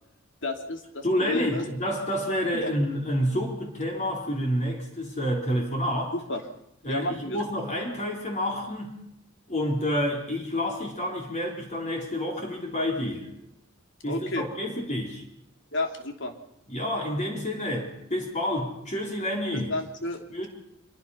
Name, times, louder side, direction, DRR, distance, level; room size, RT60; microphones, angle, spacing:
voice 1, 0.4-1.6 2.5-2.7 6.1-6.4 6.9-7.4 14.1-14.4 15.7-16.3 19.7-20.5, left 2 dB, 65° left, 4 dB, 3.0 m, -31 dB
voice 2, 1.0-6.1 6.8-9.0 9.5-13.3 14.0-15.2 16.7-19.7 20.3-20.5, equal, 35° left, 0 dB, 4.0 m, -29 dB
25.0 x 23.0 x 5.8 m, 0.81 s
head